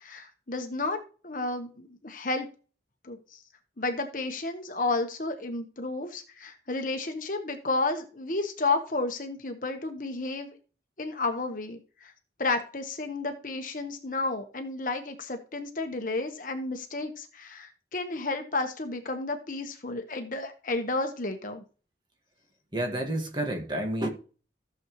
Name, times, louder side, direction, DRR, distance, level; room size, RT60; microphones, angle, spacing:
voice 1, 0.0-2.5 3.0-3.2 3.8-10.6 11.0-12.1 12.4-21.6, left 3 dB, 45° left, 1.2 m, -32 dB
voice 2, 22.7-24.1, right 1 dB, 25° right, 1.7 m, -29 dB
14.5 x 7.2 x 3.1 m
head